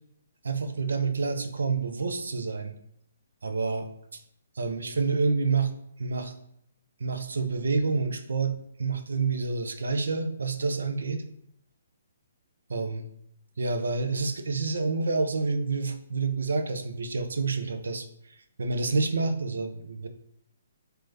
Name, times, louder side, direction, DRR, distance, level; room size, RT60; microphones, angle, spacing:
voice 1, 0.4-2.7 3.4-3.9 4.6-5.7 6.0-6.3 7.0-11.2 12.7-13.1 13.6-20.1, right 4 dB, 75° right, 8 dB, 0.4 m, -28 dB
3.3 x 2.1 x 3.2 m, 0.73 s
figure-of-eight pair, 135°, 0 cm